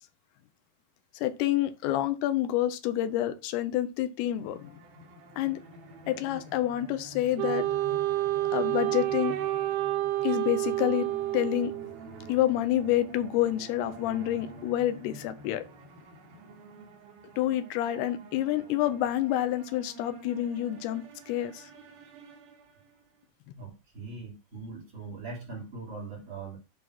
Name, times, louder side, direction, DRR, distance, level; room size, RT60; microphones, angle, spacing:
voice 1, 1.1-4.7 5.4-5.6 6.1-7.7 8.5-9.4 10.2-11.7 12.3-15.6 17.4-21.7, left 13 dB, 80° left, 2.7 m, -28 dB
sound 1, 4.3-23.1, right 1 dB, 70° right, 3.1 m, -48 dB
Wind instrument woodwind instrument, 7.4-12.0, right 15 dB, 85° right, 2.9 m, -29 dB
voice 2, 23.5-26.6, right 3 dB, 35° right, 2.6 m, -41 dB
8.5 x 3.4 x 6.2 m
omnidirectional pair, 4.8 m